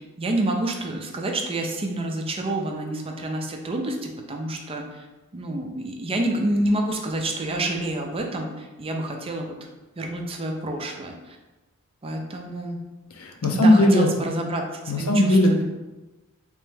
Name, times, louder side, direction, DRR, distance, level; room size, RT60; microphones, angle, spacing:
voice 1, 0.2-5.1 5.3-9.5 10.0-11.4 12.0-12.8 13.5-15.6, right 1 dB, 25° right, 2 dB, 0.4 m, -28 dB
voice 2, 13.1-14.1 14.9-15.6, left 1 dB, 80° left, 3 dB, 0.6 m, -18 dB
3.4 x 3.2 x 3.3 m, 1.1 s
head